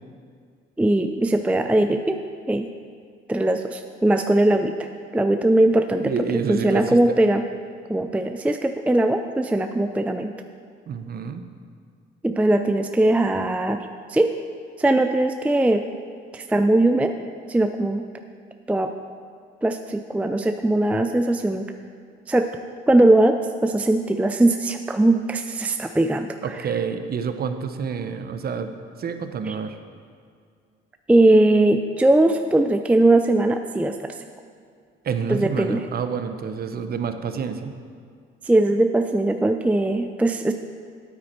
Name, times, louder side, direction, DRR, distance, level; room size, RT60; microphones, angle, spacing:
voice 1, 0.8-2.2 2.5-2.7 3.3-4.9 5.1-7.4 7.9-10.3 12.2-13.8 14.1-14.3 14.8-15.8 16.3-17.1 17.5-18.1 18.7-18.9 19.6-21.7 22.3-22.5 22.9-26.7 29.5-29.6 31.1-34.1 35.3-35.9 38.4-40.5, right 1 dB, 5° right, 7 dB, 0.4 m, -20 dB
voice 2, 6.0-7.0 10.9-11.4 26.4-28.7 29.0-29.8 35.0-37.7, right 6 dB, 50° right, 8 dB, 0.8 m, -28 dB
9.4 x 8.6 x 4.4 m, 2.2 s
cardioid pair, 90°, 20 cm